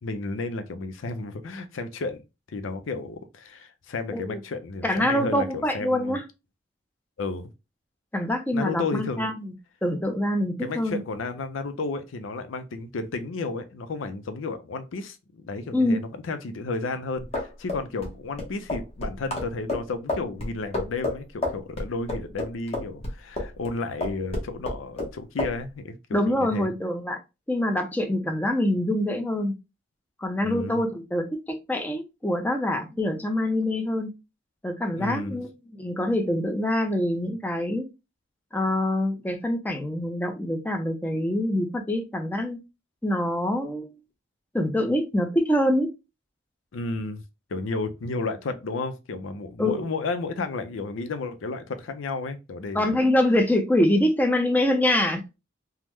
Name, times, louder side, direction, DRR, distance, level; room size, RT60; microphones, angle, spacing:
voice 1, 0.0-2.2 2.5-6.2 7.2-7.5 8.5-9.3 10.6-26.0 26.3-26.7 30.4-30.8 35.0-35.4 46.7-47.2 47.5-53.0, left 3 dB, 90° left, 0.5 m, -32 dB
voice 2, 4.8-6.2 8.1-9.5 9.8-11.0 15.7-16.0 26.1-27.2 27.5-29.5 30.2-31.4 31.7-34.1 34.6-35.5 35.8-37.9 38.5-42.6 43.0-43.9 44.5-45.9 49.6-49.8 52.7-55.2, left 1 dB, 10° left, 0.5 m, -25 dB
sound 1, 17.2-23.7 24.0-25.1 25.4-25.6, left 2 dB, 30° left, 0.9 m, -30 dB
3.5 x 2.0 x 3.0 m
head